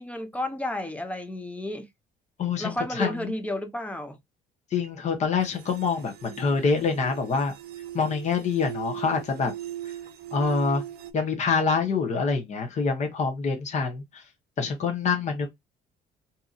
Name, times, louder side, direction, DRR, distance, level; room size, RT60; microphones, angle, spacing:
voice 1, 0.0-1.9 2.6-4.2, left 1 dB, 10° left, 0.6 m, -32 dB
voice 2, 2.4-3.3 4.7-7.5 7.9-9.5 10.3-10.8 11.1-14.2 14.6-15.5, left 5 dB, 45° left, 0.9 m, -26 dB
sound 1, 5.4-11.1, right 12 dB, 65° right, 0.6 m, -39 dB
2.8 x 2.6 x 2.3 m
cardioid pair, 110°, 17 cm